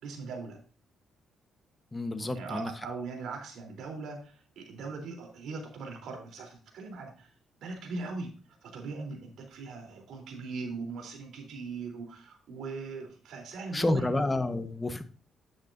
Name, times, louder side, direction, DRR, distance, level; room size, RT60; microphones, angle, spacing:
voice 1, 0.0-0.6 2.2-7.3 7.6-8.3 8.6-14.1, right 4 dB, 75° right, 2 dB, 3.3 m, -40 dB
voice 2, 1.9-2.7 13.7-15.0, left 2 dB, 20° left, 9 dB, 1.1 m, -29 dB
10.0 x 8.5 x 2.6 m, 0.37 s
cardioid pair, 90°, 0 cm